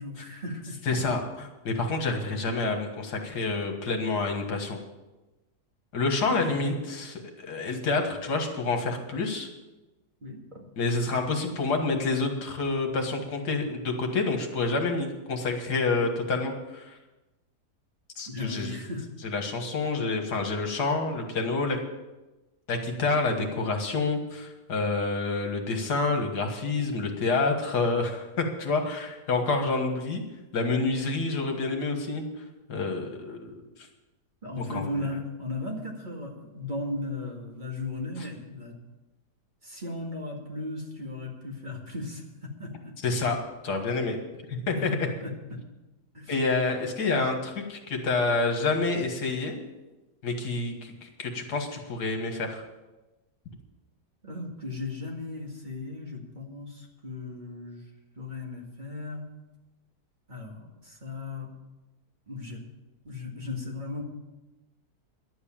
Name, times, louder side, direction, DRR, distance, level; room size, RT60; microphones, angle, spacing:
voice 1, 0.0-1.0 6.3-6.8 10.2-10.7 18.3-19.1 34.4-38.7 39.6-43.0 44.8-44.9 45.2-45.6 46.1-46.3 54.2-57.8 58.2-59.2 60.3-61.5 62.3-62.6 63.0-64.0, left 2 dB, 30° right, -1 dB, 2.1 m, -36 dB
voice 2, 0.9-4.8 5.9-9.5 10.8-17.0 18.2-18.8 19.2-21.8 22.7-30.2 30.5-32.2 32.7-33.6 34.6-34.8 43.0-43.4 43.6-44.2 44.5-45.0 46.3-49.6 50.2-52.6, left 3 dB, 75° left, 4 dB, 2.1 m, -28 dB
11.5 x 8.2 x 8.7 m, 1.1 s
omnidirectional pair, 1.8 m